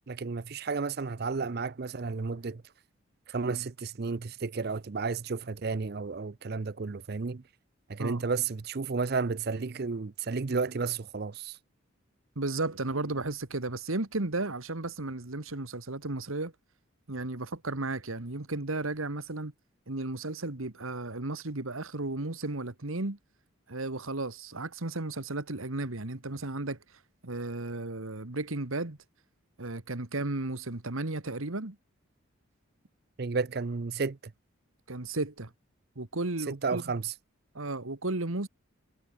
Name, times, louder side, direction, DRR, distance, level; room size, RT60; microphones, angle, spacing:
voice 1, 0.1-2.6 3.3-7.4 7.9-11.6 33.2-34.3 36.5-37.1, right 4 dB, 50° right, 0.5 m, -32 dB
voice 2, 12.4-16.5 17.1-19.5 19.9-23.2 23.7-26.8 27.2-29.0 29.6-31.8 34.9-35.5 36.0-36.8 37.5-38.5, right 2 dB, 80° right, 1.9 m, -34 dB
head